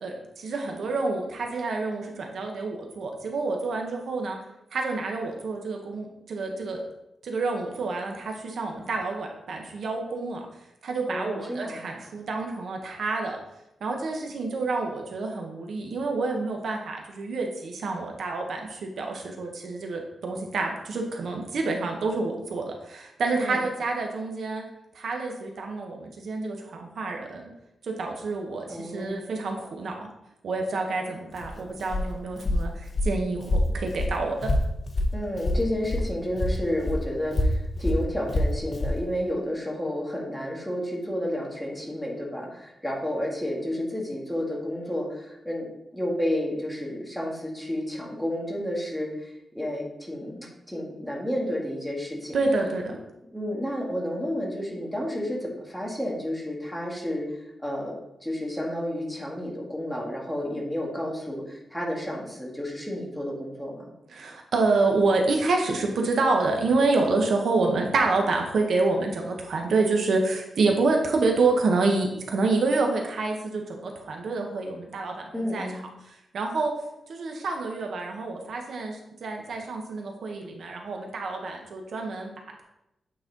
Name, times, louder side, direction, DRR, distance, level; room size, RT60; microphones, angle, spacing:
voice 1, 0.0-4.4 4.7-6.8 7.2-10.5 10.8-13.4 13.8-24.6 24.9-27.5 27.8-30.1 30.4-34.5 52.3-52.9 64.1-75.7 76.0-76.7 77.1-82.3, right 3 dB, 65° right, 2 dB, 1.0 m, -28 dB
voice 2, 11.1-11.8 23.4-23.6 28.7-29.2 35.1-45.7 45.9-52.4 53.3-57.3 57.6-57.9 58.2-63.8 75.3-75.8, left 1 dB, ahead, -3 dB, 1.6 m, -31 dB
Walk footsteps, 31.3-36.1 36.4-39.0, left 1 dB, 35° left, 0.8 m, -26 dB
8.7 x 4.2 x 3.9 m, 0.87 s
wide cardioid pair, 155°, 0 cm